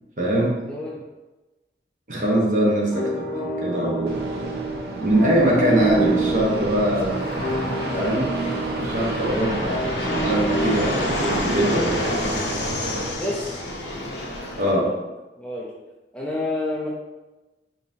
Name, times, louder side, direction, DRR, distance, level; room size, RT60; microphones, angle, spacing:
voice 1, 0.2-0.7 2.1-3.3 3.6-4.2 5.0-7.2 7.9-8.4 8.7-12.2 14.6-14.9, right 1 dB, 45° right, -3 dB, 0.9 m, -22 dB
voice 2, 0.7-1.0 2.6-2.9 13.2-13.6 14.9-15.0 15.4-15.7 16.1-16.9, left 2 dB, 5° left, -5 dB, 0.4 m, -29 dB
sound 1, 2.9-11.9, right 2 dB, 15° right, 0.9 m, -28 dB
Fixed-wing aircraft airplane, 4.1-13.1, right 2 dB, 65° right, 0.5 m, -32 dB
Fixed-wing aircraft airplane 2, 7.1-14.7, left 1 dB, 80° left, 0.7 m, -28 dB
5.2 x 2.7 x 2.6 m, 1.1 s
head